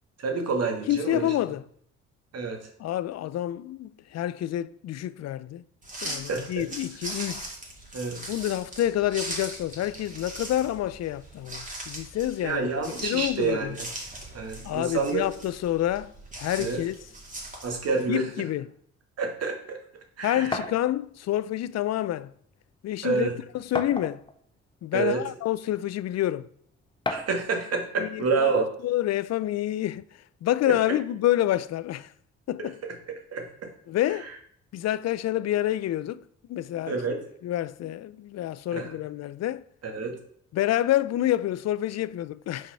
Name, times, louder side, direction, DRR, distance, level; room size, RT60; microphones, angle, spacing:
voice 1, 0.2-1.3 2.3-2.7 6.3-6.6 7.9-8.2 12.4-13.9 14.3-15.3 16.6-16.8 17.6-18.2 19.2-19.8 20.2-20.5 23.0-23.3 24.9-25.2 27.1-28.6 33.3-33.5 36.9-37.2 38.7-38.9 39.9-40.1, right 4 dB, 55° right, 1.9 m, -28 dB
voice 2, 0.9-1.7 2.8-5.6 6.0-7.5 8.3-13.8 14.6-17.0 18.1-18.7 20.2-22.3 22.8-23.3 23.5-24.2 24.8-26.5 28.0-32.1 32.5-32.8 33.9-34.3 34.7-37.0 37.4-39.6 40.5-42.7, left 13 dB, 60° left, 0.5 m, -28 dB
sound 1, 5.8-18.0, right 1 dB, 25° right, 2.4 m, -40 dB
sound 2, 20.5-20.8 21.9-22.0 22.4-22.5 23.7-24.4 25.2-25.3 27.0-27.4, left 2 dB, 15° left, 0.7 m, -31 dB
6.4 x 4.8 x 5.6 m
cardioid pair, 90°, 30 cm